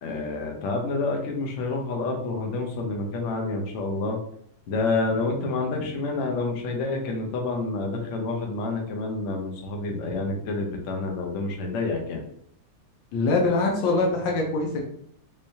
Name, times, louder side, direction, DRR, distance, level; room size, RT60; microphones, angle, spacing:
voice 1, 0.0-4.2 4.7-12.2, left 3 dB, 60° left, 2 dB, 0.8 m, -28 dB
voice 2, 13.1-14.8, left 3 dB, 75° left, 0 dB, 1.4 m, -23 dB
3.7 x 3.1 x 2.7 m, 0.68 s
omnidirectional pair, 2.1 m